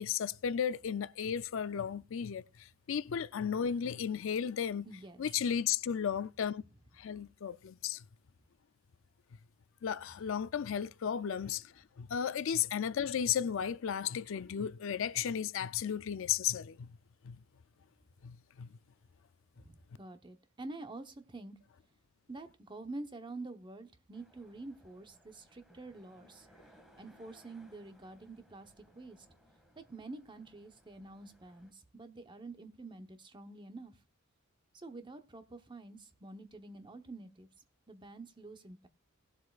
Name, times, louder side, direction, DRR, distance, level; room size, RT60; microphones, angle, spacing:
voice 1, 0.0-4.9 5.2-6.6 7.0-8.0 9.8-16.9 17.2-17.4 18.2-18.7, left 8 dB, 60° left, 0.4 m, -34 dB
voice 2, 4.8-5.2 19.6-21.5 22.3-26.5 27.0-29.3 29.8-33.9 34.7-37.5 37.9-38.9, right 2 dB, 20° right, 0.9 m, -48 dB
sound 1, 24.1-31.7, equal, ahead, 1.8 m, -64 dB
19.0 x 7.8 x 2.4 m
head